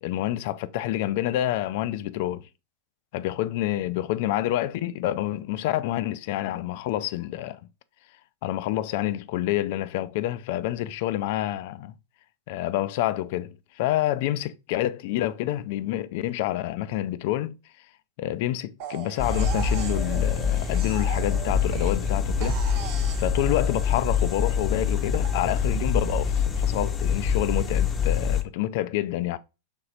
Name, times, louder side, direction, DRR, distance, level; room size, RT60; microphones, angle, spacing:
voice 1, 0.0-2.5 3.1-7.6 8.4-11.9 12.5-17.6 18.2-22.6 23.2-29.4, left 14 dB, 50° left, 0.4 m, -28 dB
sound 1, 18.8-22.1 22.4-25.3, right 7 dB, 45° right, 0.9 m, -39 dB
sound 2, 19.2-28.4, left 6 dB, 20° left, 0.7 m, -25 dB
5.3 x 3.8 x 2.4 m
figure-of-eight pair, 90°, 0 cm